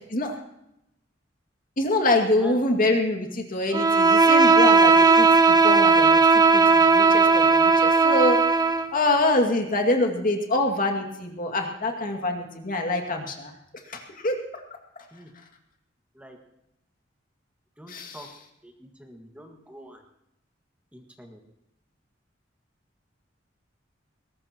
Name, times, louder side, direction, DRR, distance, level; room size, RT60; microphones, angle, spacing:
voice 1, 1.8-5.3 5.6-6.2 6.5-8.4 8.9-13.5 13.9-14.4 17.9-18.2, left 2 dB, 45° left, 3 dB, 2.2 m, -25 dB
Bowed string instrument, 3.7-8.9, right 4 dB, 20° right, 0.8 m, -17 dB
voice 2, 17.8-18.3 18.6-20.0 20.9-21.4, right 1 dB, 5° right, 2 dB, 1.7 m, -45 dB
21.5 x 18.5 x 3.0 m, 0.83 s
head